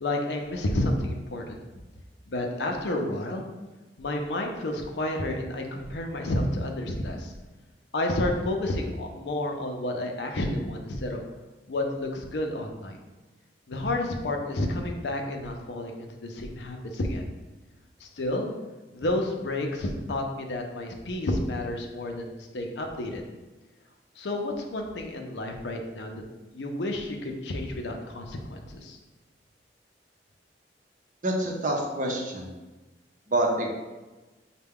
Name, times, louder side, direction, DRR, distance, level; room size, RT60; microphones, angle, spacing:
voice 1, 0.0-1.6 2.3-3.4 4.0-7.3 7.9-11.2 11.7-13.0 13.7-17.2 18.0-18.5 18.9-23.2 24.2-26.2 26.5-29.0, left 1 dB, 70° left, 2 dB, 0.6 m, -30 dB
voice 2, 31.2-32.5 33.3-33.7, right 1 dB, 45° right, 1 dB, 0.7 m, -27 dB
5.6 x 2.2 x 3.6 m, 1.2 s
head